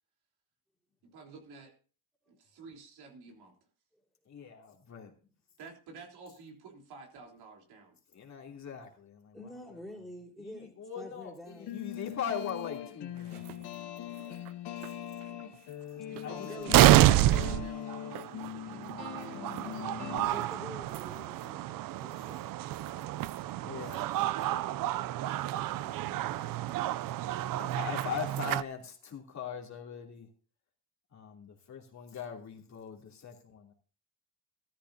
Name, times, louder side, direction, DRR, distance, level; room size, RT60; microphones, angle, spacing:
voice 1, 1.0-1.7 2.3-3.6 5.6-8.0 16.1-19.8 22.8-23.1 23.5-23.9, right 4 dB, 75° right, 1 dB, 3.7 m, -51 dB
voice 2, 4.3-5.1 8.1-9.7 10.4-13.9 14.8-14.9 16.2-16.5 23.6-24.1 24.4-24.7 25.7-26.7 27.3-30.3 31.1-33.7, left 7 dB, 45° left, 0 dB, 3.0 m, -41 dB
voice 3, 9.3-11.8 16.5-16.7 20.2-22.4, left 1 dB, ahead, -2 dB, 3.6 m, -47 dB
sound 1, 11.5-20.3, left 11 dB, 90° left, 1.5 m, -41 dB
The Wild Wild West ( No music), 13.4-13.5 14.5-14.6 14.8-14.9 16.2-16.3 16.7-28.6, right 14 dB, 60° right, 0.5 m, -28 dB
14.5 x 14.0 x 2.7 m, 0.38 s
cardioid pair, 115°, 39 cm